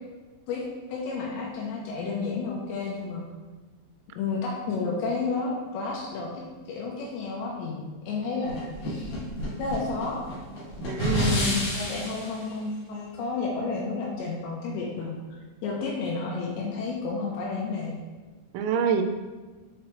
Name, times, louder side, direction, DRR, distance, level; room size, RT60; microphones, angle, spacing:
voice 1, 0.5-3.2 4.2-6.4 6.7-9.2 9.6-10.2 11.2-15.1 15.6-18.0, left 4 dB, 80° left, -3 dB, 2.9 m, -31 dB
sound 1, 8.5-12.4, equal, 55° left, 2.0 m, -29 dB
voice 2, 10.9-11.7 18.5-19.0, right 6 dB, 85° right, 6 dB, 2.9 m, -27 dB
7.1 x 4.5 x 3.2 m, 1.3 s
omnidirectional pair, 5.2 m